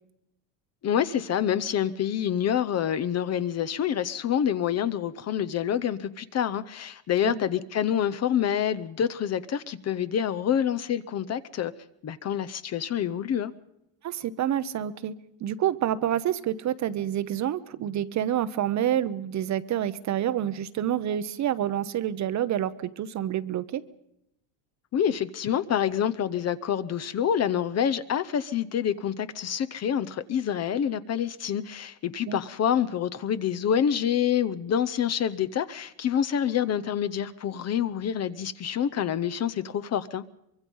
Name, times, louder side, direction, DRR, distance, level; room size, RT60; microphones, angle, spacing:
voice 1, 0.8-11.7 12.0-13.5 24.9-40.2, left 9 dB, 30° left, 0.8 m, -27 dB
voice 2, 14.0-15.1 15.4-23.8 32.3-32.4, right 11 dB, 35° right, 0.8 m, -28 dB
24.0 x 23.0 x 5.5 m
cardioid pair, 150°, 49 cm